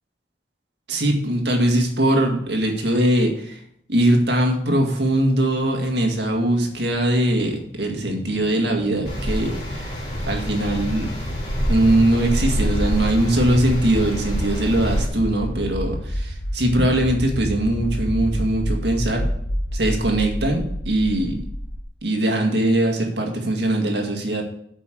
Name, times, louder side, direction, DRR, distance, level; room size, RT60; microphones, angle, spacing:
voice 1, 0.9-3.6 3.9-10.0 10.3-11.1 11.7-19.3 19.7-21.4 22.0-24.4, right 1 dB, 65° right, 2 dB, 1.9 m, -21 dB
sound 1, 6.8-21.8, equal, 80° left, 1.2 m, -30 dB
sound 2, 9.0-15.1, equal, 30° left, 3.6 m, -26 dB
8.4 x 5.4 x 7.8 m, 0.70 s
head